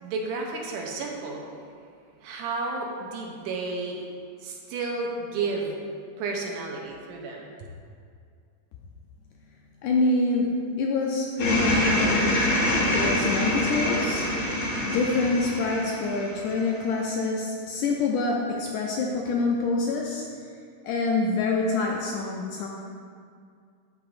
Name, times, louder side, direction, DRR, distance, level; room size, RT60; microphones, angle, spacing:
voice 1, 0.0-1.5 2.2-4.0 4.4-5.8 6.2-7.5, right 3 dB, 80° right, 0 dB, 2.2 m, -32 dB
voice 2, 9.8-10.5 10.8-12.5 12.8-20.3 20.8-22.7, left 3 dB, 80° left, -1 dB, 1.8 m, -26 dB
sound 1, 11.4-16.8, left 1 dB, 65° left, 3.0 m, -25 dB
12.0 x 4.7 x 2.5 m, 2.3 s
omnidirectional pair, 3.9 m